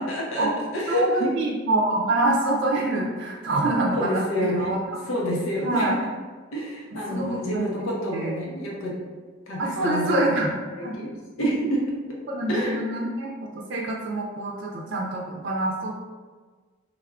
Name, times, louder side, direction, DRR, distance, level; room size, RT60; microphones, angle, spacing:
voice 1, 0.1-1.3 3.9-4.8 5.1-6.0 6.5-9.0 9.5-10.4 10.9-11.9 12.5-12.8, equal, 85° left, -3 dB, 0.8 m, -28 dB
voice 2, 0.9-4.8 5.6-5.9 7.1-7.7 8.1-8.3 9.6-10.5 10.8-11.0 12.2-15.9, right 2 dB, 60° right, -2 dB, 0.5 m, -25 dB
3.5 x 2.3 x 3.5 m, 1.4 s
head